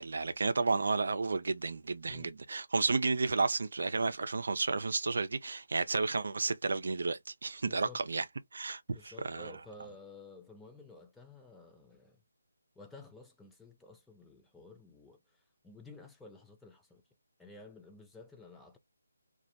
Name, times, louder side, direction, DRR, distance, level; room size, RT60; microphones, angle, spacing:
voice 1, 0.0-8.2 8.5-9.5, right 4 dB, 65° right, 0.4 m, -32 dB
voice 2, 2.0-2.4 7.6-8.0 8.9-12.2 12.8-17.0 17.4-18.8, left 3 dB, 5° left, 0.4 m, -53 dB
2.2 x 2.0 x 2.7 m
figure-of-eight pair, 155°, 0 cm